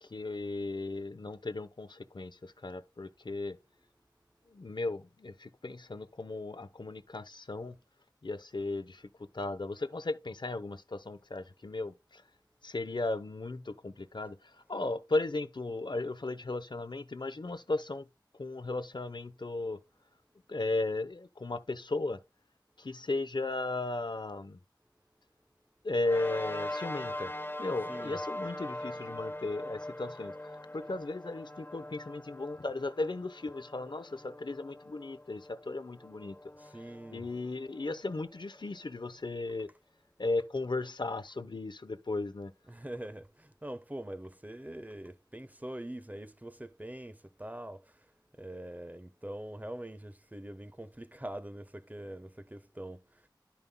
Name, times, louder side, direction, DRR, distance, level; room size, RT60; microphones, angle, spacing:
voice 1, 0.0-3.6 4.5-7.7 8.2-9.1 9.3-12.2 12.6-18.1 18.4-19.8 20.5-22.2 22.8-24.6 25.8-27.3 27.6-36.4 37.1-39.7 40.2-42.5, left 2 dB, 70° left, 0.8 m, -36 dB
sound 1, 26.0-38.8, left 1 dB, 25° left, 0.9 m, -42 dB
voice 2, 27.9-28.2 36.6-37.3 42.7-47.8 48.4-53.0, right 1 dB, 20° right, 0.6 m, -43 dB
10.5 x 6.9 x 2.2 m
wide cardioid pair, 45°, 8 cm